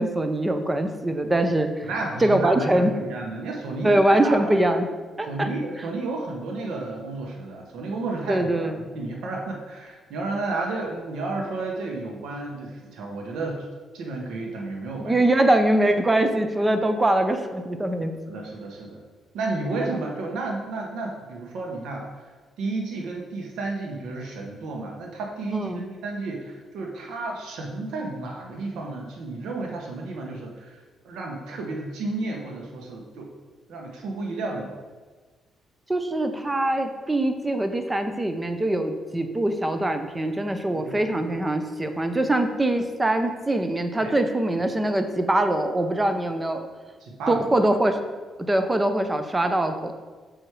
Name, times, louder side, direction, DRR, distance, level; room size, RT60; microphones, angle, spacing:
voice 1, 0.0-1.9 2.2-2.9 3.8-4.9 5.2-5.5 8.3-8.8 15.0-18.1 25.5-25.8 35.9-46.7 47.3-48.0 48.4-49.9, right 1 dB, 15° right, 7 dB, 0.7 m, -23 dB
voice 2, 1.8-4.5 5.2-13.6 13.9-15.2 18.3-19.0 19.3-22.1 22.6-30.8 31.0-33.3 33.7-34.8 40.7-41.2 44.0-44.1 47.0-47.5, right 3 dB, 80° right, 0 dB, 1.1 m, -32 dB
6.3 x 4.7 x 4.8 m, 1.4 s
cardioid pair, 90°, 0 cm